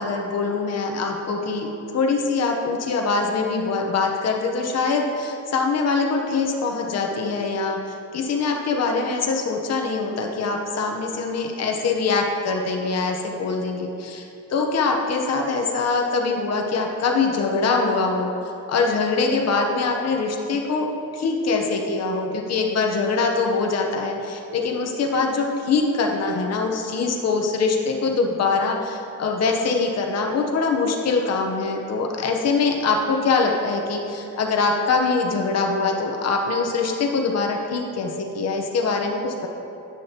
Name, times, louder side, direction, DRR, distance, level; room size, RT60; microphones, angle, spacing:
voice 1, 0.0-20.9 21.1-39.5, left 4 dB, 50° left, 1 dB, 0.9 m, -23 dB
9.9 x 8.8 x 2.9 m, 2.8 s
wide cardioid pair, 165°, 33 cm